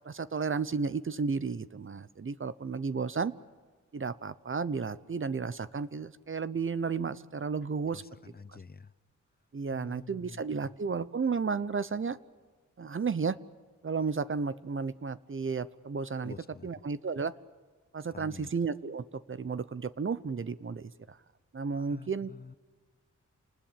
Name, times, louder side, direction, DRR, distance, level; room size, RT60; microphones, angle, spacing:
voice 1, 0.0-3.3 3.9-8.0 9.5-12.2 12.8-13.4 13.8-16.3 16.6-17.3 17.9-21.2 21.5-22.3, right 5 dB, 45° right, 16 dB, 0.8 m, -33 dB
voice 2, 7.9-8.9 9.7-10.7 16.2-16.7 18.1-18.5 21.7-22.5, left 4 dB, 30° left, 15 dB, 0.8 m, -48 dB
28.5 x 20.0 x 8.8 m, 1.4 s
wide cardioid pair, 95°, 30 cm